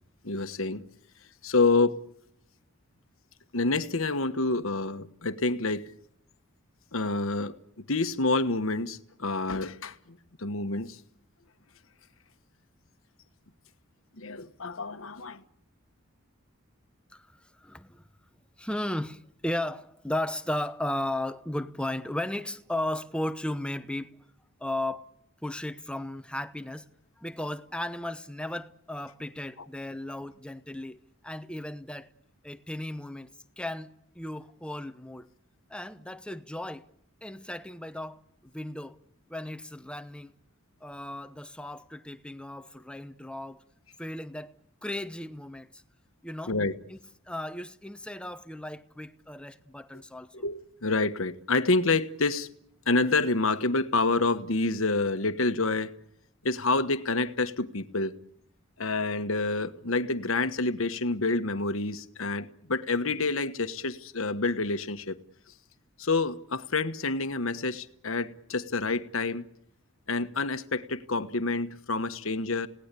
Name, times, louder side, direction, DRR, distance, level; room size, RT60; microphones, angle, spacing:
voice 1, 0.2-0.8 1.4-2.0 3.5-5.8 6.9-7.6 7.9-11.0 14.2-15.4 46.5-46.7 50.4-52.5 52.9-55.9 56.4-58.2 58.8-65.2 66.0-69.4 70.1-72.7, left 3 dB, 75° left, 1.3 m, -28 dB
voice 2, 17.1-18.1 18.6-24.2 24.6-25.1 25.4-26.9 27.2-32.1 32.4-35.3 35.7-36.9 37.2-39.0 39.3-40.3 40.8-43.6 44.0-44.5 44.8-45.8 46.2-46.6 46.9-47.0 47.3-50.5, left 1 dB, 5° left, 0.9 m, -35 dB
29.5 x 18.0 x 8.4 m
head